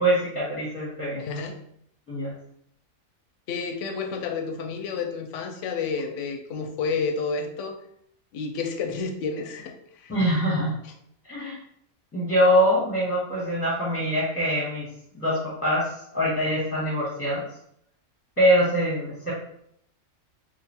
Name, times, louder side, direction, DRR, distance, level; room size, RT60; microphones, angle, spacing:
voice 1, 0.0-1.2 2.1-2.3 10.1-10.7 11.2-11.6 12.1-14.9 15.1-17.4 18.4-19.3, equal, 10° left, -6 dB, 0.8 m, -24 dB
voice 2, 1.2-1.6 3.5-7.8 8.3-10.1, left 5 dB, 70° left, 5 dB, 0.8 m, -30 dB
3.0 x 2.4 x 4.2 m, 0.71 s
omnidirectional pair, 1.5 m